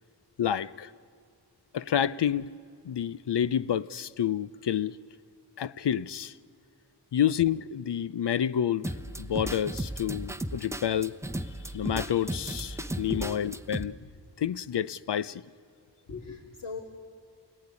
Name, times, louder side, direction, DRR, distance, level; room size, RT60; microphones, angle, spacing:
voice 1, 0.4-0.9 1.7-2.6 2.8-5.0 5.6-6.3 7.1-11.2 11.7-14.0 14.4-15.4, left 9 dB, 70° left, 0.7 m, -29 dB
sound 1, 8.8-13.8, right 1 dB, 5° right, 0.9 m, -35 dB
voice 2, 13.1-13.4 16.1-16.8, left 5 dB, 45° left, 3.2 m, -39 dB
28.5 x 19.0 x 9.8 m
wide cardioid pair, 110°, 42 cm